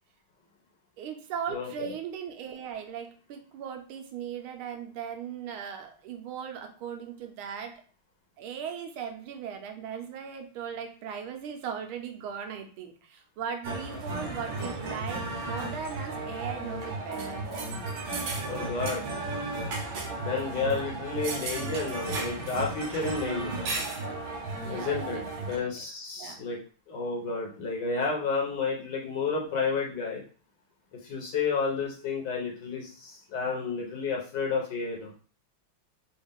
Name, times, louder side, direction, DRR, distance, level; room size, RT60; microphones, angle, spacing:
voice 1, 1.0-7.8 8.4-17.4 24.6-25.7 26.2-26.5, right 7 dB, 90° right, 4 dB, 1.5 m, -38 dB
voice 2, 1.5-1.9 18.5-19.0 20.2-23.5 24.7-25.2 25.5-26.6 26.9-30.2 31.0-35.1, left 4 dB, 60° left, -1 dB, 1.5 m, -31 dB
sound 1, 13.6-25.6, right 2 dB, 70° right, 1.6 m, -34 dB
4.2 x 2.3 x 3.6 m, 0.39 s
omnidirectional pair, 2.3 m